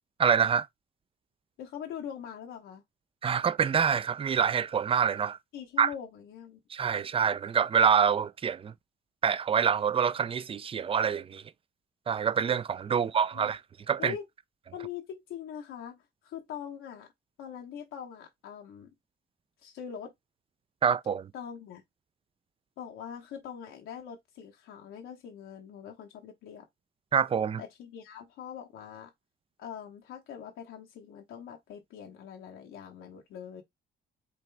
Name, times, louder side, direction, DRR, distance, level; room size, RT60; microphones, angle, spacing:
voice 1, 0.2-0.7 3.2-5.4 5.8-5.9 6.7-8.7 9.2-11.4 12.1-13.6 13.9-14.1 20.8-21.3 27.1-27.6, right 7 dB, 30° right, 0.4 m, -26 dB
voice 2, 1.6-2.8 5.5-6.6 12.9-13.5 14.0-14.2 14.7-17.1 17.4-18.9 19.6-20.1 21.3-21.8 22.8-26.7 27.6-29.1 29.6-33.6, left 8 dB, 90° left, 1.1 m, -43 dB
5.2 x 3.0 x 3.4 m
cardioid pair, 90°, 20 cm